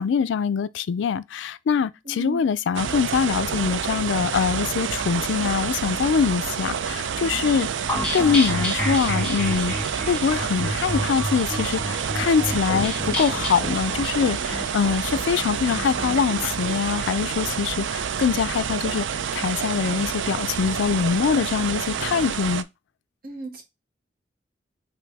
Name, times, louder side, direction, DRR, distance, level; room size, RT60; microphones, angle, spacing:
voice 1, 0.0-7.7 8.1-9.8 10.1-19.1 19.3-22.7, left 6 dB, 80° left, 0.3 m, -23 dB
voice 2, 2.0-2.4 23.2-23.6, right 3 dB, 50° right, 1.2 m, -34 dB
sound 1, 2.7-22.6, right 7 dB, 85° right, 0.4 m, -28 dB
sound 2, 7.9-17.3, left 1 dB, 5° left, 1.5 m, -30 dB
6.0 x 2.6 x 3.4 m
head